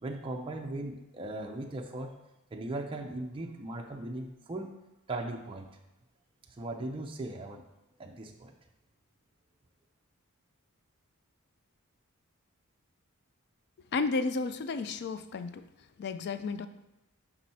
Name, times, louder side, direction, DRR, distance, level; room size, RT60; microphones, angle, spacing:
voice 1, 0.0-2.2 2.5-4.8 5.1-5.7 6.5-7.6 8.0-8.6, right 2 dB, 25° right, 1 dB, 0.5 m, -38 dB
voice 2, 13.9-15.6 16.0-16.7, left 4 dB, 50° left, 11 dB, 0.4 m, -32 dB
5.9 x 5.4 x 4.1 m, 0.93 s
head